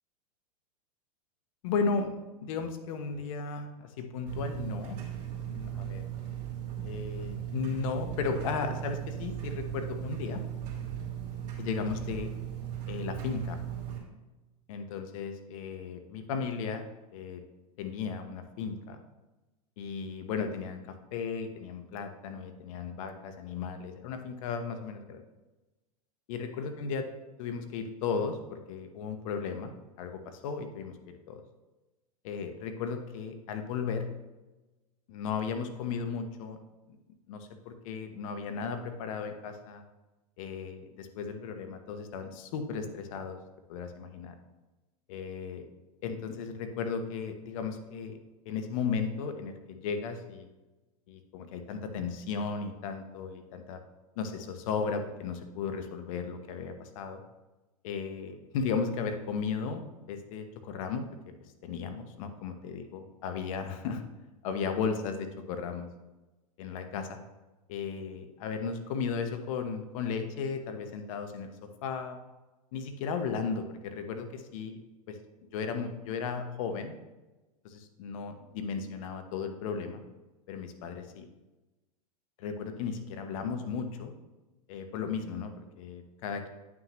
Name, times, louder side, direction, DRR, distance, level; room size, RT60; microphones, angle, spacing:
voice 1, 1.6-5.0 5.4-6.0 6.8-10.4 11.6-12.3 12.9-13.6 14.7-16.8 17.1-17.4 17.8-19.0 19.8-25.2 26.3-27.1 27.4-29.7 30.0-31.4 32.2-34.1 35.1-36.6 36.9-37.0 37.3-39.8 40.4-43.4 43.7-44.3 45.1-45.7 46.0-48.2 48.5-50.5 51.1-53.8 54.2-57.2 57.8-61.1 61.6-64.0 64.4-65.9 66.6-67.2 67.7-71.5 71.8-72.2 72.7-74.8 75.1-75.2 75.5-77.0 77.6-80.0 80.5-81.3 82.4-84.1 84.7-86.5, left 5 dB, 60° left, 7 dB, 1.0 m, -35 dB
sound 1, 4.3-14.0, right 10 dB, 45° right, 2.7 m, -37 dB
9.1 x 6.1 x 3.0 m, 1.1 s
hypercardioid pair, 105°, 20 cm